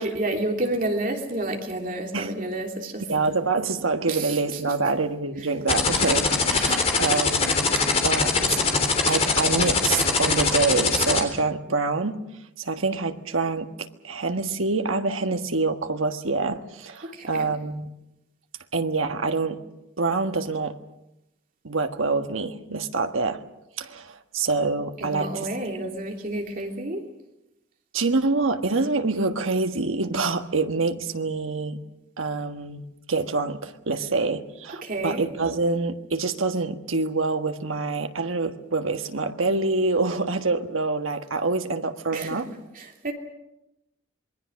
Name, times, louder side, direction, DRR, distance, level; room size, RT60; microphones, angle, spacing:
voice 1, 0.0-3.1 4.1-4.8 5.3-5.6 17.0-17.5 25.0-27.1 34.7-35.3 42.1-43.1, right 1 dB, 45° right, 2 dB, 3.1 m, -30 dB
voice 2, 3.1-8.6 9.0-12.2 12.6-17.9 18.7-19.6 20.0-20.8 21.6-23.4 23.8-25.5 27.9-31.8 32.2-32.8 33.1-42.5, right 3 dB, 85° right, 7 dB, 1.5 m, -26 dB
sound 1, 5.7-11.2, left 4 dB, 30° left, 3.5 m, -21 dB
27.0 x 21.5 x 6.4 m, 0.88 s
head